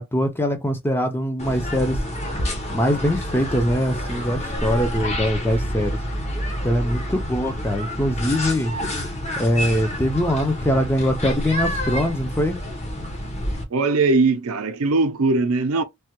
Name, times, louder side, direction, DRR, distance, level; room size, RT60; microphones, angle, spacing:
voice 1, 0.0-2.0 2.7-6.0 6.6-8.7 9.4-12.6, equal, 10° left, 0.5 m, -22 dB
sound 1, 1.4-13.6, equal, 30° left, 0.9 m, -28 dB
voice 2, 13.7-15.8, right 3 dB, 75° right, 0.5 m, -20 dB
3.3 x 2.2 x 2.9 m
head